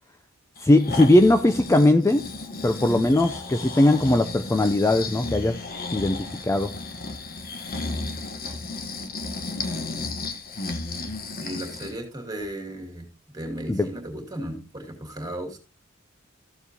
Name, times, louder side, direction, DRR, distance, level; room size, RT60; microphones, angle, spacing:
Breathing, 0.6-12.0 12.4-12.5, left 3 dB, 45° left, 1.0 m, -34 dB
voice 1, 0.6-2.2 2.6-5.7 5.9-6.7 13.7-13.9, left 1 dB, 15° left, 0.4 m, -19 dB
voice 2, 11.4-13.1 13.3-15.6, right 1 dB, 20° right, 2.3 m, -35 dB
14.0 x 7.1 x 2.7 m
head